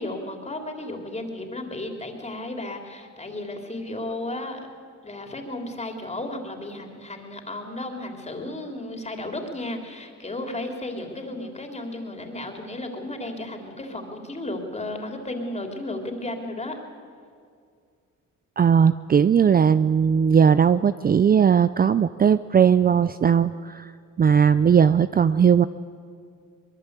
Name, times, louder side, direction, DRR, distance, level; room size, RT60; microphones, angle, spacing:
voice 1, 0.0-4.7 5.0-16.8, left 1 dB, 20° left, 3 dB, 3.5 m, -34 dB
voice 2, 18.6-23.9 24.2-25.7, right 7 dB, 30° right, 14 dB, 0.5 m, -18 dB
23.0 x 20.5 x 8.2 m, 2.3 s
cardioid pair, 90°, 30 cm